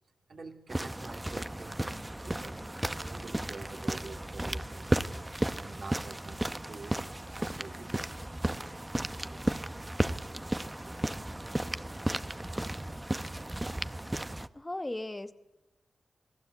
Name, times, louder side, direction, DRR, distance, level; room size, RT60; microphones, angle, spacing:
voice 1, 0.3-2.6 2.9-5.0 5.6-7.1 7.3-8.0 9.3-9.4 10.3-10.4 10.8-11.0 12.2-12.3, right 3 dB, 60° right, 4 dB, 3.1 m, -47 dB
sound 1, 0.7-14.5, right 1 dB, 15° right, 0.8 m, -34 dB
voice 2, 14.5-15.3, left 1 dB, 20° left, 10 dB, 1.0 m, -36 dB
28.0 x 18.0 x 8.1 m, 0.97 s
wide cardioid pair, 110°, 0 cm